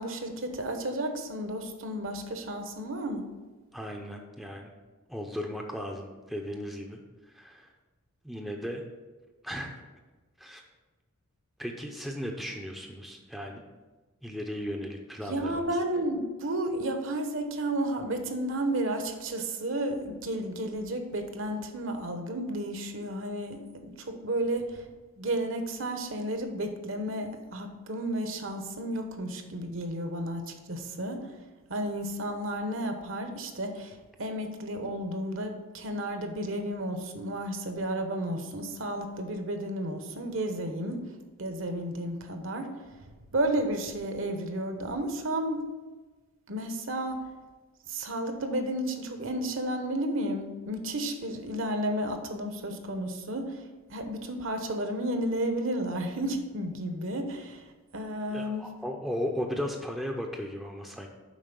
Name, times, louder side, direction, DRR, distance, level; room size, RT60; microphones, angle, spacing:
voice 1, 0.0-3.3 15.3-24.8 25.2-31.3 31.7-41.1 41.4-42.8 43.3-45.7 46.5-47.2 47.9-53.6 53.9-57.6 57.9-58.7, right 1 dB, 60° right, 6 dB, 1.0 m, -32 dB
voice 2, 3.7-4.7 5.1-7.0 7.3-7.7 8.2-8.8 9.4-9.7 10.4-10.6 11.6-13.6 14.2-15.7 58.3-61.1, equal, ahead, 1 dB, 0.6 m, -36 dB
7.4 x 5.2 x 5.3 m, 1.2 s
head